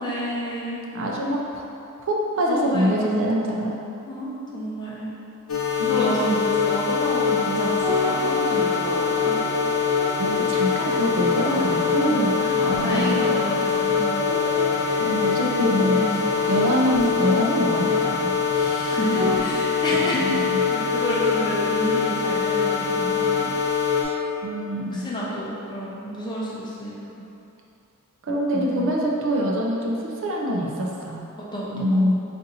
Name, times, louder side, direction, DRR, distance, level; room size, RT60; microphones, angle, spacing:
voice 1, 0.0-1.1 2.5-3.0 4.1-5.1 5.6-9.4 11.4-14.4 15.9-16.2 18.5-23.5 24.8-27.2 28.5-28.8 31.4-32.0, equal, 20° left, -6 dB, 0.6 m, -30 dB
voice 2, 0.9-1.7 2.0-3.8 5.8-6.4 10.2-13.2 15.0-16.0 16.5-18.3 19.9-20.6 24.4-25.1 28.2-31.2 31.7-32.2, equal, 60° right, -2 dB, 0.5 m, -25 dB
sound 1, 5.5-24.0, left 5 dB, 65° left, 0.8 m, -23 dB
sound 2, 7.8-19.4, equal, 90° right, 0.9 m, -32 dB
4.0 x 2.6 x 4.0 m, 2.7 s
head